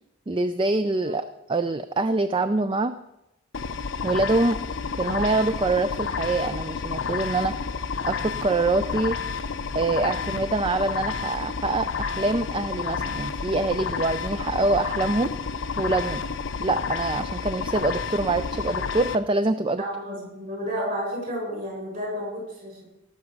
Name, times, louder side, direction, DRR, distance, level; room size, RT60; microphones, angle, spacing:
voice 1, 0.3-3.0 4.0-4.6 5.0-7.6 8.0-9.2 9.7-15.3 15.8-16.2 16.6-19.8, right 2 dB, 25° right, 11 dB, 0.4 m, -25 dB
sound 1, 3.5-19.2, left 5 dB, 60° left, 0.6 m, -30 dB
voice 2, 19.8-22.8, equal, 40° right, -2 dB, 6.7 m, -31 dB
17.5 x 7.0 x 6.5 m, 0.89 s
head